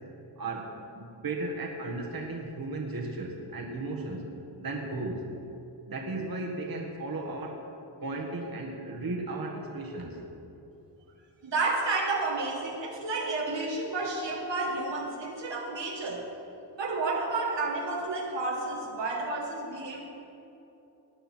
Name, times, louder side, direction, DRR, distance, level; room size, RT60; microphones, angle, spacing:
voice 1, 0.4-4.2 4.6-5.2 5.9-7.7 8.0-10.2, right 2 dB, 55° right, 0 dB, 1.6 m, -35 dB
voice 2, 11.4-16.3 16.8-20.0, right 3 dB, 80° right, -1 dB, 1.8 m, -31 dB
18.0 x 9.2 x 4.4 m, 2.9 s
cardioid pair, 75°, 43 cm